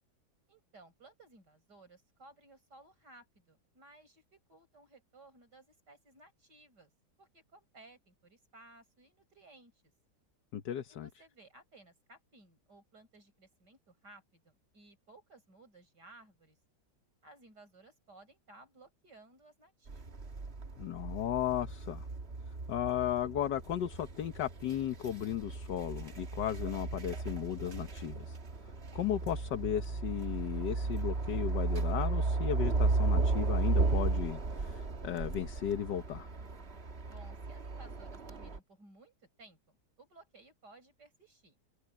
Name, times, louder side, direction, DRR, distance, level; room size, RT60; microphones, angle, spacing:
voice 1, 0.5-6.9 7.2-9.7 10.9-16.6 17.2-20.2 37.1-41.6, right 2 dB, 75° right, 7.7 m, -59 dB
voice 2, 10.5-11.1 20.8-22.1 22.7-28.4 28.9-36.3, left 10 dB, 80° left, 1.7 m, -35 dB
sound 1, 19.9-38.6, right 3 dB, 40° right, 1.7 m, -35 dB
omnidirectional pair, 1.8 m